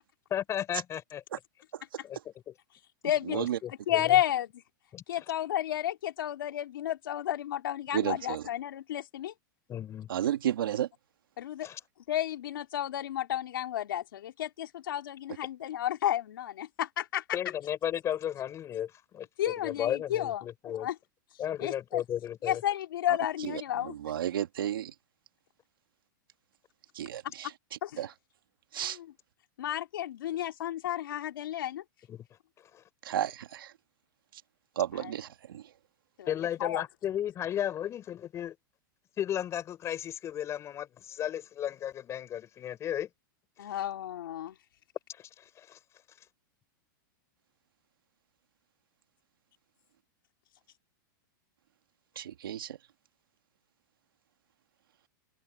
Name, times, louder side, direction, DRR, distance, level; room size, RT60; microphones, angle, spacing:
voice 1, 0.3-1.2 2.0-2.2 2.5-2.6 3.3-4.2 4.9-5.0 9.7-10.1 11.6-11.8 17.3-20.9 21.4-22.6 32.1-32.2 32.7-32.8 36.3-38.6 39.2-43.1 45.2-45.8, left 10 dB, 25° left, 5.3 m, -34 dB
voice 2, 3.0-3.4 3.7-4.5 5.1-9.3 11.4-11.7 12.1-17.4 19.4-20.5 20.7-21.0 21.6-22.0 22.4-23.9 27.8-28.1 28.8-29.1 29.6-31.8 34.9-35.1 36.2-36.3 36.6-36.8 43.6-44.6, left 12 dB, 80° left, 2.7 m, -32 dB
voice 3, 7.9-8.4 10.1-10.9 23.1-23.2 23.4-24.9 27.0-27.5 28.0-28.1 28.7-29.0 33.0-33.7 34.8-35.6 52.2-52.8, right 11 dB, 90° right, 2.1 m, -32 dB
supercardioid pair, 145°, 11 cm